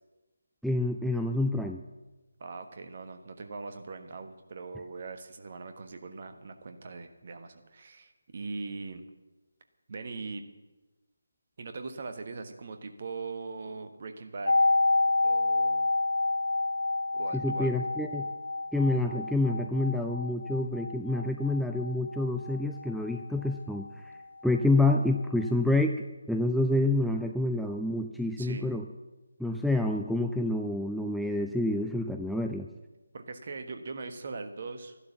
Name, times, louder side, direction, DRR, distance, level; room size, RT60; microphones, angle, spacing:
voice 1, 0.6-1.8 17.3-18.3 18.7-24.1 24.4-26.0 26.3-28.8 29.4-32.7, left 2 dB, ahead, 3 dB, 0.4 m, -28 dB
voice 2, 2.4-9.0 9.9-10.4 11.6-14.5 15.2-15.9 17.1-17.7 28.4-28.7 33.1-35.0, right 4 dB, 40° right, 7 dB, 1.3 m, -41 dB
sound 1, 14.4-24.2 24.5-24.6, left 2 dB, 65° left, 0.4 m, -29 dB
13.5 x 11.5 x 7.1 m, 1.1 s
figure-of-eight pair, 155°, 0 cm